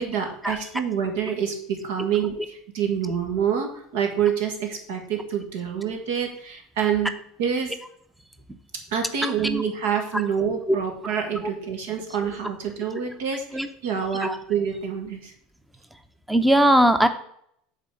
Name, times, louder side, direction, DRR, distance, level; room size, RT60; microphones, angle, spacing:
voice 1, 0.0-7.1 7.4-7.8 8.9-13.5 13.8-15.3, right 7 dB, 85° right, 3 dB, 1.9 m, -27 dB
voice 2, 9.2-9.6 10.7-10.8 11.4-11.5 13.5-13.7 14.2-14.4 16.3-17.1, right 1 dB, 5° right, 9 dB, 0.6 m, -20 dB
7.4 x 4.2 x 6.9 m, 0.69 s
supercardioid pair, 120°, 0 cm